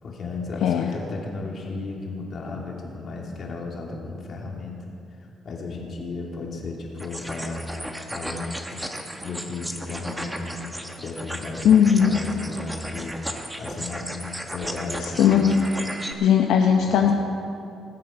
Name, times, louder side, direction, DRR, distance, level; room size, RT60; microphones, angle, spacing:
voice 1, 0.0-4.8 5.4-7.6 8.1-8.9 9.2-10.5 11.0-13.1 13.6-14.1 14.5-15.5 16.7-17.1, left 3 dB, 55° left, -1 dB, 2.9 m, -34 dB
voice 2, 0.6-0.9 11.6-12.2 15.0-15.6 16.2-17.1, left 8 dB, 85° left, 2 dB, 0.8 m, -18 dB
sound 1, 7.0-16.1, equal, 5° right, 1.3 m, -35 dB
20.0 x 7.7 x 5.8 m, 2.6 s
cardioid pair, 90°, 0 cm